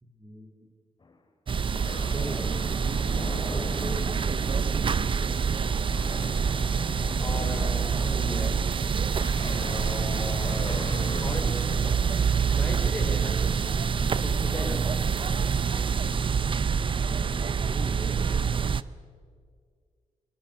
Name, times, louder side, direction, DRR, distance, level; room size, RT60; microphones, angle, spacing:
voice 1, 0.0-0.7 2.0-2.6 3.2-5.3 17.0-17.3 17.7-18.3, equal, 25° right, 1 dB, 3.4 m, -41 dB
sound 1, 1.0-1.1 1.9-4.7 5.2-5.5 5.7-12.9, left 3 dB, 40° left, 3.0 m, -41 dB
sound 2, 1.5-18.8, right 6 dB, 45° right, 0.6 m, -26 dB
Subway metro underground, 1.7-16.1, equal, 5° right, 6.8 m, -51 dB
voice 2, 7.2-8.6 9.4-10.6 11.2-12.1 12.4-13.5 14.0-15.1, left 1 dB, 15° left, 1 dB, 5.1 m, -36 dB
25.0 x 24.0 x 6.8 m, 2.1 s
wide cardioid pair, 125°, 12 cm